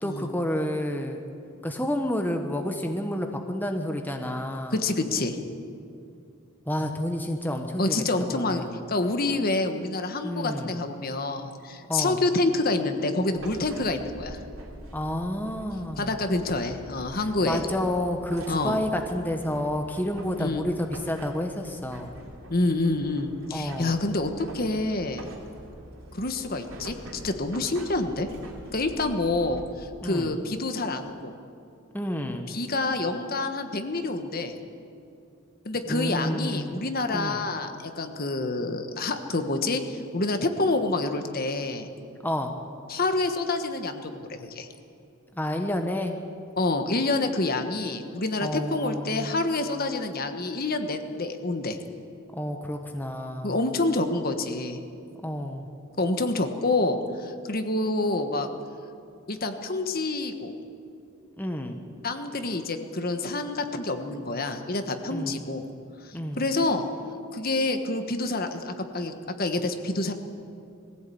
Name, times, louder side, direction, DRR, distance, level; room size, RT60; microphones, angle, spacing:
voice 1, 0.0-1.2 1.6-4.8 6.7-8.0 8.3-8.8 10.2-10.8 11.9-12.2 14.9-16.1 17.1-17.2 17.4-22.2 23.5-24.0 30.0-30.3 31.9-32.5 35.9-36.8 37.1-37.4 42.2-42.5 45.3-46.2 48.4-49.3 52.3-53.6 55.2-55.7 61.4-61.8 65.1-65.3 66.1-66.4, left 1 dB, 10° left, 4 dB, 1.0 m, -30 dB
voice 2, 4.7-5.5 7.8-14.4 16.0-17.6 18.5-18.8 20.4-20.7 22.5-25.3 26.1-27.0 27.2-28.3 28.7-31.3 32.5-34.5 35.6-41.9 42.9-44.7 46.6-51.8 53.4-54.8 56.0-58.5 59.3-60.5 62.0-65.6 66.0-66.9 67.3-70.1, left 2 dB, 45° left, 7 dB, 1.4 m, -27 dB
sound 1, 13.3-29.6, right 1 dB, 75° right, 3.0 m, -44 dB
21.0 x 15.5 x 8.6 m, 2.6 s
head